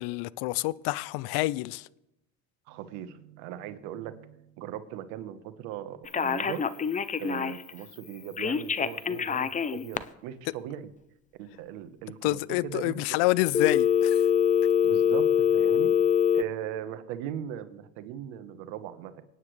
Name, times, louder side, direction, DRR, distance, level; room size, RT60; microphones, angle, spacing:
voice 1, 0.0-1.9 12.2-14.2, left 19 dB, 65° left, 0.6 m, -28 dB
voice 2, 2.7-6.6 7.2-10.9 11.4-13.2 14.8-19.2, right 10 dB, 75° right, 1.3 m, -39 dB
Telephone, 6.1-7.7 8.4-10.0 13.5-16.4, left 8 dB, 20° left, 0.5 m, -24 dB
25.0 x 9.5 x 3.3 m
supercardioid pair, 95°, 43 cm